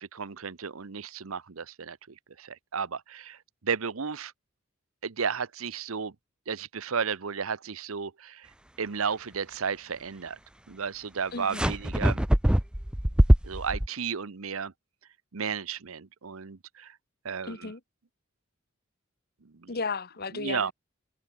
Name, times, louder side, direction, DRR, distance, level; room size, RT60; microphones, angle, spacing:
voice 1, 0.0-4.3 5.0-6.1 6.5-8.5 8.8-10.4 10.7-12.3 13.4-14.7 15.3-17.0 17.2-17.7 19.4-19.7 20.3-20.7, right 6 dB, 85° right, 0.9 m, -33 dB
voice 2, 11.3-11.7 17.5-17.8 19.7-20.7, left 4 dB, 50° left, 1.6 m, -34 dB
sound 1, 11.5-13.9, equal, 5° right, 0.6 m, -22 dB
head